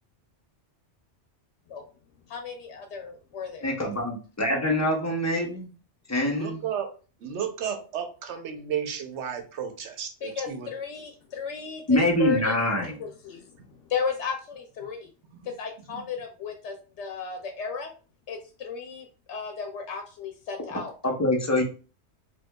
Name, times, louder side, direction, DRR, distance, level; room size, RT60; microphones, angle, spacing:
voice 1, 2.3-3.7 10.2-12.5 12.8-13.5 13.9-15.1 15.4-17.9 18.3-20.9, left 5 dB, 80° left, 3 dB, 0.9 m, -34 dB
voice 2, 3.6-5.7 6.1-6.6 11.9-13.0 21.0-21.6, left 1 dB, 20° left, 0 dB, 0.5 m, -25 dB
voice 3, 6.3-6.9 7.2-10.7 15.9-16.0, right 8 dB, 80° right, 6 dB, 0.9 m, -33 dB
4.5 x 2.3 x 2.2 m, 0.37 s
omnidirectional pair, 1.2 m